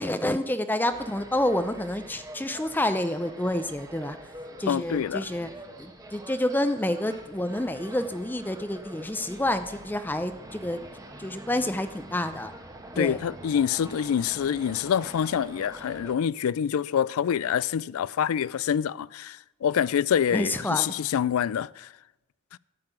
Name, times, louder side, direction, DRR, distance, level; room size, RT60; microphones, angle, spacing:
voice 1, 0.0-4.2 4.6-5.5 5.8-10.8 11.2-12.5 13.0-13.2 20.3-20.9, left 1 dB, 10° left, 0.5 m, -28 dB
sound 1, 0.9-16.2, right 1 dB, 15° right, 1.1 m, -45 dB
voice 2, 4.7-5.3 13.0-21.9 22.5-22.6, left 8 dB, 75° left, 0.3 m, -26 dB
12.5 x 5.8 x 8.9 m
head